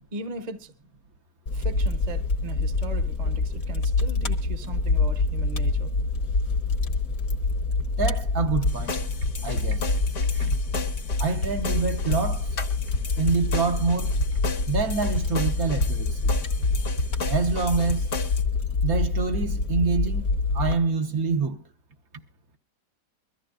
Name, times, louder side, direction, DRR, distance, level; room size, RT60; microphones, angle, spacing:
voice 1, 0.1-0.7 1.5-5.9, right 3 dB, 30° right, 1.1 m, -38 dB
Fire, 1.5-20.7, left 3 dB, 60° left, 1.7 m, -26 dB
voice 2, 8.0-9.0 9.4-9.9 10.3-10.5 11.2-12.6 13.2-14.4 14.7-16.4 17.3-18.1 18.8-20.3 20.5-21.6, right 4 dB, 60° right, 1.6 m, -26 dB
sound 1, 8.7-18.4, left 2 dB, 80° left, 2.1 m, -32 dB
23.5 x 14.0 x 2.5 m
omnidirectional pair, 1.8 m